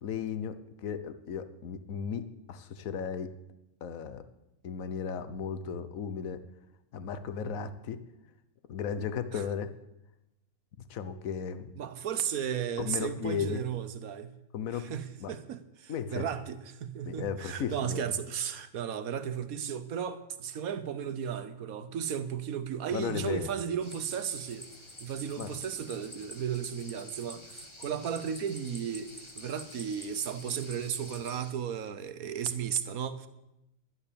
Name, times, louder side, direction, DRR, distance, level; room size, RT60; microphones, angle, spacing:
voice 1, 0.0-0.5 0.8-2.2 2.5-3.3 3.8-4.2 4.6-6.4 6.9-8.0 8.7-9.7 10.9-11.7 12.8-13.6 14.5-14.9 15.2-15.3 15.9-16.2 17.0-18.0 22.9-23.5 25.4-25.5, left 7 dB, 65° left, 1.3 m, -35 dB
voice 2, 11.8-14.4 14.7-24.7 25.0-33.3, right 8 dB, 70° right, 1.3 m, -35 dB
sound 1, 23.8-31.5, left 1 dB, 20° left, 1.3 m, -48 dB
11.5 x 11.0 x 6.8 m
omnidirectional pair, 1.6 m